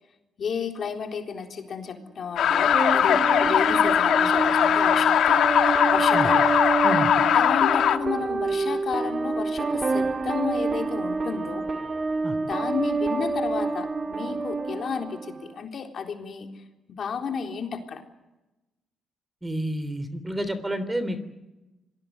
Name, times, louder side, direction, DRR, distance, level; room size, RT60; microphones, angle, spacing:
voice 1, 0.4-6.5 7.3-11.7 12.4-16.6 16.9-18.0, left 6 dB, 55° left, 4 dB, 3.9 m, -32 dB
sound 1, 2.4-8.0, left 9 dB, 70° left, 1.6 m, -20 dB
sound 2, 2.5-15.5, right 3 dB, 35° right, 1.8 m, -28 dB
voice 2, 19.4-21.2, right 1 dB, 10° right, 12 dB, 3.3 m, -29 dB
27.0 x 19.5 x 8.0 m, 1.0 s
cardioid pair, 90°, 0 cm